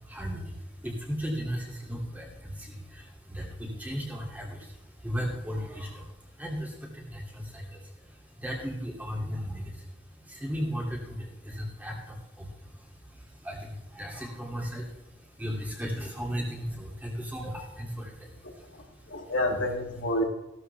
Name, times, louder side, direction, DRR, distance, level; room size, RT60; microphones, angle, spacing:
voice 1, 0.0-19.2, equal, 10° right, -2 dB, 2.6 m, -36 dB
voice 2, 18.4-20.2, left 1 dB, 85° left, 1 dB, 2.6 m, -30 dB
15.5 x 12.5 x 3.4 m, 0.96 s
head